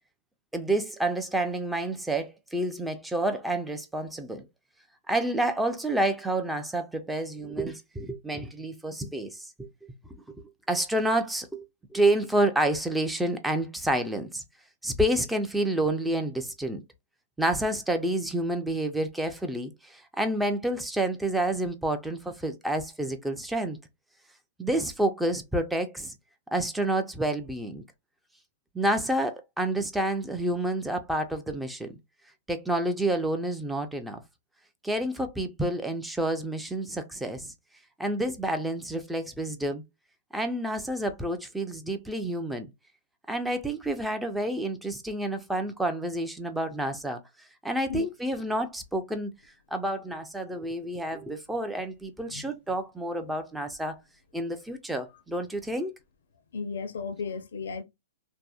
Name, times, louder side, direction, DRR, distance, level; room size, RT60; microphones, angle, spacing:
voice 1, 0.5-4.5 5.1-9.7 10.7-11.6 11.9-14.4 14.8-16.8 17.4-23.8 24.6-26.1 26.5-27.8 28.7-32.0 32.5-34.2 34.8-37.5 38.0-39.8 40.3-42.7 43.3-47.2 47.6-49.3 49.7-54.0 54.3-55.9, right 1 dB, 5° right, 0.4 m, -29 dB
voice 2, 56.5-57.8, left 5 dB, 75° left, 0.5 m, -34 dB
2.6 x 2.0 x 2.3 m
hypercardioid pair, 145°, 0 cm